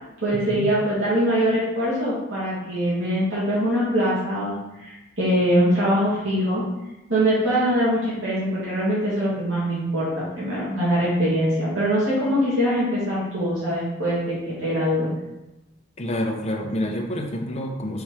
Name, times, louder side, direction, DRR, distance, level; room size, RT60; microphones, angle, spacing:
voice 1, 0.2-6.6 7.1-15.1, equal, 85° right, -9 dB, 2.3 m, -23 dB
voice 2, 16.0-18.0, left 1 dB, 35° left, 1 dB, 0.9 m, -28 dB
4.7 x 4.3 x 4.9 m, 0.98 s
head